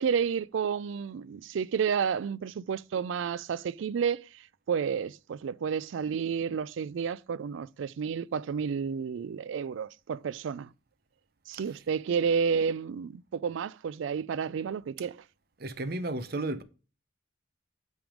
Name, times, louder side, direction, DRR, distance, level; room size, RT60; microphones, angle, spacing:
voice 1, 0.0-10.7 11.5-15.2, right 6 dB, 70° right, 0.3 m, -31 dB
voice 2, 15.6-16.6, right 2 dB, 50° right, 0.7 m, -33 dB
9.0 x 3.5 x 4.9 m
head